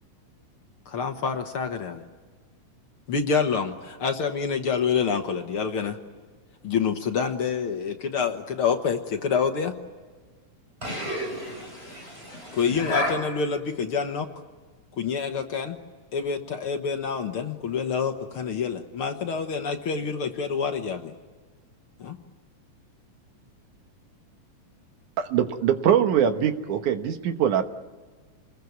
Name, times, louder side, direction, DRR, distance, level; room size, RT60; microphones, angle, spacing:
voice 1, 0.9-2.0 3.1-6.0 6.6-9.7 12.5-14.3 15.0-15.8 16.1-21.1 22.0-22.2, left 6 dB, 55° left, 5 dB, 1.7 m, -27 dB
voice 2, 10.8-13.1, equal, 15° right, 0 dB, 7.9 m, -31 dB
voice 3, 25.2-27.6, right 9 dB, 70° right, 8 dB, 2.6 m, -22 dB
28.5 x 21.0 x 9.4 m, 1.5 s
omnidirectional pair, 3.8 m